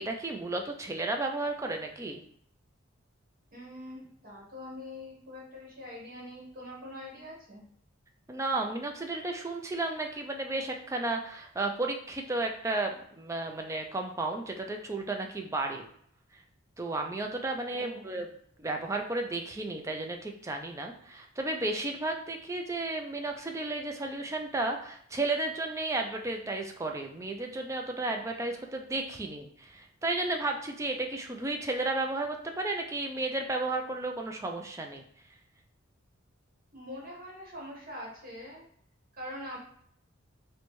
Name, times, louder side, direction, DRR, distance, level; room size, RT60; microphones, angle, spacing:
voice 1, 0.0-2.2 8.3-15.8 16.8-18.3 18.6-35.0, right 2 dB, 15° right, 3 dB, 0.3 m, -33 dB
voice 2, 3.5-7.6 17.7-18.2 36.7-38.6 39.1-39.6, left 1 dB, 45° right, -4 dB, 1.2 m, -44 dB
4.3 x 2.2 x 3.0 m, 0.66 s
head